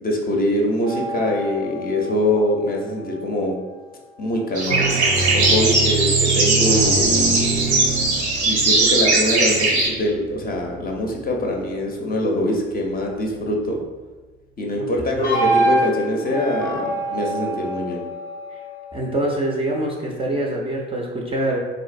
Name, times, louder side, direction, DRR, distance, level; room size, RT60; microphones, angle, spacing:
voice 1, 0.0-3.6 4.2-4.9 5.3-6.1 6.3-7.4 8.4-13.8 14.6-18.0, left 1 dB, 25° left, -1 dB, 0.6 m, -23 dB
sound 1, 0.8-3.5 4.5-11.3 15.2-19.4, right 3 dB, 85° left, 0.8 m, -26 dB
sound 2, 4.5-9.9, right 3 dB, 85° right, 0.6 m, -19 dB
voice 2, 15.2-15.6 18.5-18.6 18.9-21.6, right 1 dB, 15° right, -2 dB, 0.4 m, -25 dB
3.7 x 2.5 x 2.5 m, 1.3 s
figure-of-eight pair, 45°, 33 cm